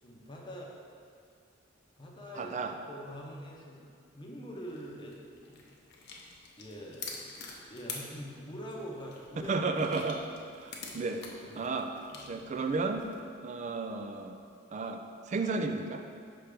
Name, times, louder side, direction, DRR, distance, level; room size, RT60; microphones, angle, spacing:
voice 1, 0.0-0.8 2.0-2.5 2.8-3.8 4.1-5.2 5.5-5.6 6.6-7.2 7.7-9.5 11.0-11.2 11.5-11.7 12.1-12.4, equal, 25° left, -2 dB, 0.8 m, -44 dB
voice 2, 2.3-2.7 9.4-10.2 10.5-11.2 11.6-11.9 12.3-13.0 13.4-14.4 14.7-15.0 15.3-16.0, right 3 dB, 35° right, 6 dB, 0.4 m, -33 dB
sound 1, 4.6-13.2, left 4 dB, 60° left, 0.7 m, -47 dB
5.7 x 3.3 x 5.1 m, 2.3 s
head